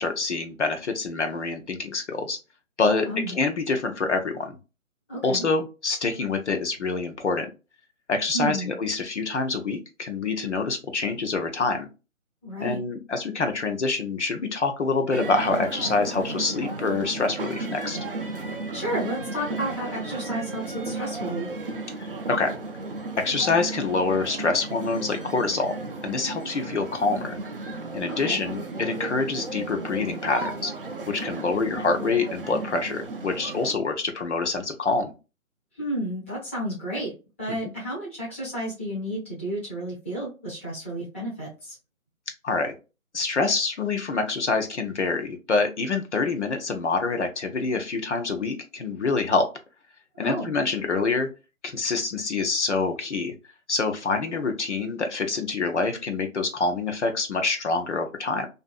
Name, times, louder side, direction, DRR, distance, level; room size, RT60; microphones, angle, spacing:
voice 1, 0.0-2.4 2.8-4.5 5.2-7.5 8.1-11.9 12.6-18.0 22.0-22.5 23.2-25.8 26.0-27.4 27.9-30.7 31.1-35.1 42.4-42.7 43.1-49.5 50.2-51.3 51.6-53.3 53.7-58.5, left 3 dB, 55° left, 5 dB, 0.6 m, -26 dB
voice 2, 3.0-3.4 5.1-5.5 8.3-8.7 12.4-12.8 18.7-21.5 28.1-28.4 35.7-41.8 50.1-50.5, right 1 dB, 10° left, -8 dB, 0.6 m, -32 dB
sound 1, 15.1-33.7, right 3 dB, 45° right, 0.4 m, -34 dB
2.5 x 2.5 x 2.3 m, 0.30 s
figure-of-eight pair, 150°, 41 cm